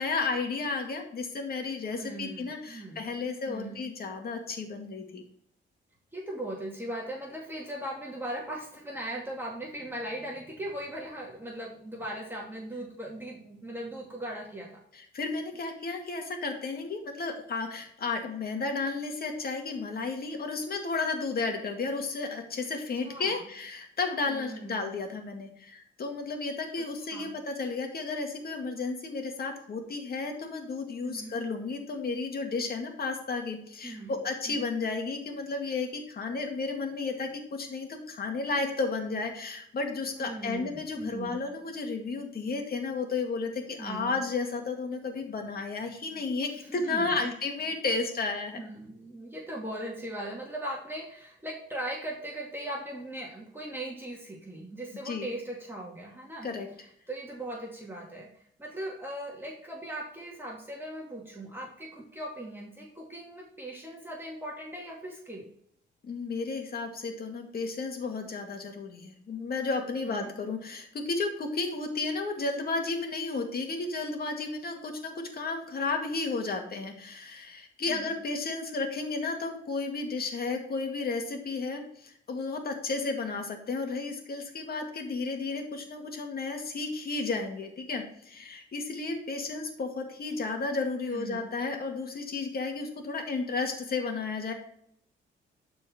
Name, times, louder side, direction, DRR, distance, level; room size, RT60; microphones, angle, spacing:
voice 1, 0.0-5.2 14.9-48.7 55.0-55.3 56.4-56.7 66.0-94.5, left 3 dB, 50° left, 3 dB, 2.2 m, -33 dB
voice 2, 1.9-3.2 3.5-3.8 6.1-14.8 23.0-23.5 24.3-24.8 27.1-27.3 31.0-31.3 33.8-34.1 34.5-34.6 40.1-41.4 43.8-44.1 46.5-47.3 48.5-56.5 57.1-58.3 58.6-65.5 70.0-70.3 77.9-78.1 91.1-91.4, right 1 dB, 10° right, -3 dB, 2.2 m, -39 dB
11.5 x 4.6 x 4.5 m, 0.67 s
cardioid pair, 90°, 20 cm